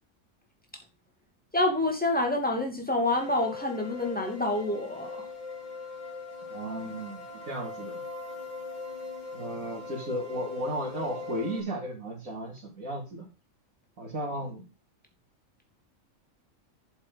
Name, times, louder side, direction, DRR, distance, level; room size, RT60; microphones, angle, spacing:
voice 1, 1.5-5.2, left 2 dB, 5° left, 2 dB, 2.4 m, -27 dB
sound 1, 3.0-11.6, left 3 dB, 30° left, 2.5 m, -40 dB
voice 2, 6.5-8.0 9.3-13.3 14.0-14.6, equal, 70° right, -4 dB, 2.8 m, -35 dB
8.5 x 7.2 x 5.3 m, 0.29 s
omnidirectional pair, 1.4 m